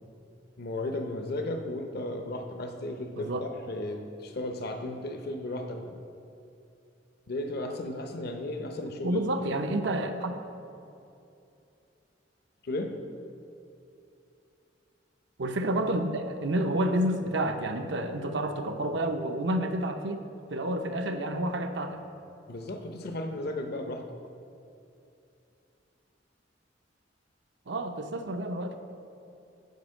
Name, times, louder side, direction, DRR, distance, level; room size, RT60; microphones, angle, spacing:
voice 1, 0.6-6.0 7.3-9.6 12.6-12.9 22.5-24.0, left 1 dB, 60° left, 4 dB, 0.7 m, -35 dB
voice 2, 3.2-3.5 9.0-10.3 15.4-20.2 20.5-22.0 27.7-28.7, right 1 dB, 70° right, 6 dB, 0.7 m, -29 dB
9.3 x 5.1 x 6.4 m, 2.7 s
head